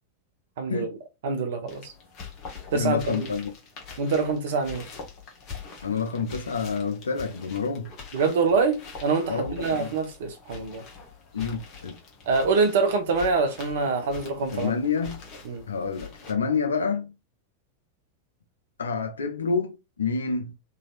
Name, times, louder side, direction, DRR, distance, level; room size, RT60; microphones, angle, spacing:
voice 1, 0.6-0.9 1.2-1.9 2.7-3.3 4.0-4.8 8.1-10.8 12.3-14.7 15.5-15.6, right 4 dB, 55° right, 0.8 m, -25 dB
sound 1, 1.7-16.3, left 5 dB, 35° left, 1.1 m, -44 dB
voice 2, 2.7-3.5 5.8-7.9 9.3-9.9 11.3-12.0 14.5-15.2 15.7-17.1 18.8-20.6, left 5 dB, 70° left, 0.5 m, -28 dB
3.1 x 2.7 x 2.4 m
figure-of-eight pair, 90°, 0 cm